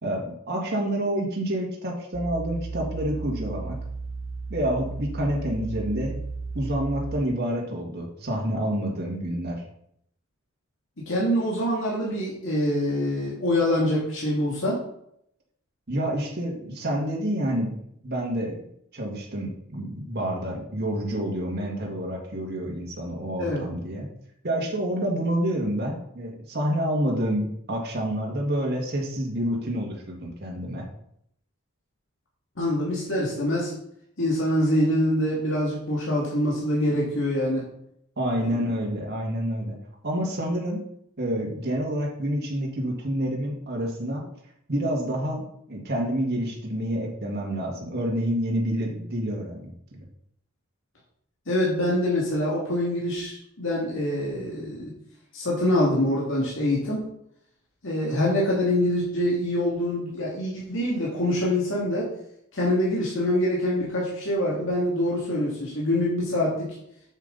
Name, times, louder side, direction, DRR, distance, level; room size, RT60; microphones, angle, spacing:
voice 1, 0.0-3.8 4.5-6.2 6.6-9.6 15.9-17.7 18.0-18.6 18.9-24.1 24.4-30.9 38.2-39.8 40.0-40.8 41.2-44.3 44.7-49.7, equal, 50° right, -1 dB, 1.8 m, -28 dB
sound 1, 2.1-7.2, right 4 dB, 90° right, 0.9 m, -34 dB
voice 2, 11.0-14.8 23.4-23.6 32.6-33.7 34.2-37.6 38.4-38.6 51.5-54.9 55.3-57.0 57.8-62.1 62.5-66.8, left 1 dB, 65° left, -5 dB, 2.2 m, -25 dB
7.6 x 7.4 x 3.9 m, 0.72 s
head